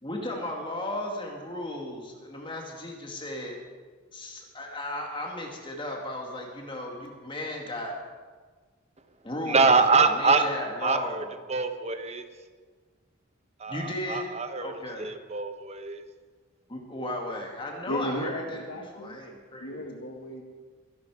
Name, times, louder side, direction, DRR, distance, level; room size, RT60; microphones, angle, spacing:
voice 1, 0.0-3.6 4.1-7.9 9.2-9.7 10.0-11.3 13.7-14.3 14.6-15.1 16.7-19.8, left 1 dB, 25° left, 0 dB, 2.2 m, -35 dB
voice 2, 9.5-10.4 10.8-12.2 13.6-16.0 18.1-18.2, right 4 dB, 30° right, 7 dB, 1.1 m, -25 dB
voice 3, 17.9-19.2 19.6-20.4, left 1 dB, 70° left, 0 dB, 1.9 m, -35 dB
24.0 x 11.0 x 4.9 m, 1.5 s
head